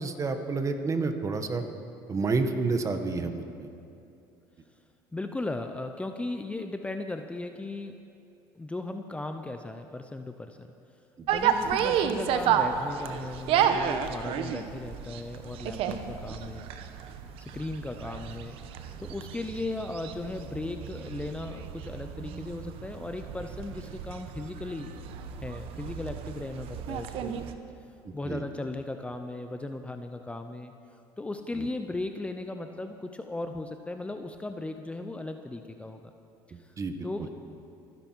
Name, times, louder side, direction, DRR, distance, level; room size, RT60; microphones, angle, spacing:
voice 1, 0.0-1.6 2.1-3.7 11.2-11.3 28.0-28.4 31.6-31.7 36.8-36.9, right 4 dB, 30° right, 7 dB, 1.4 m, -29 dB
voice 2, 5.1-7.9 8.5-10.7 11.3-16.7 17.0-18.6 19.0-25.0 25.4-27.4 28.1-30.7 31.2-36.0 36.6-36.7 37.0-37.3, left 2 dB, 10° left, 7 dB, 0.7 m, -37 dB
sound 1, 11.3-27.5, right 8 dB, 65° right, 1.0 m, -32 dB
24.5 x 10.5 x 4.6 m, 2.6 s
supercardioid pair, 90°, 10 cm